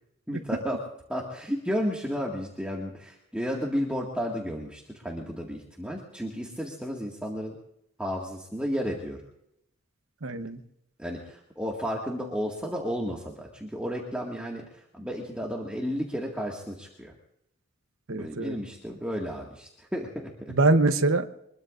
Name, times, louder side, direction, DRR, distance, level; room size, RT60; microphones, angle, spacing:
voice 1, 0.3-0.8 1.1-7.6 8.0-9.2 11.0-17.1 18.1-20.5, equal, 5° right, -2 dB, 1.9 m, -33 dB
voice 2, 10.2-10.6 18.1-18.6 20.5-21.3, right 2 dB, 65° right, 8 dB, 1.0 m, -23 dB
24.5 x 21.5 x 2.6 m, 0.78 s
head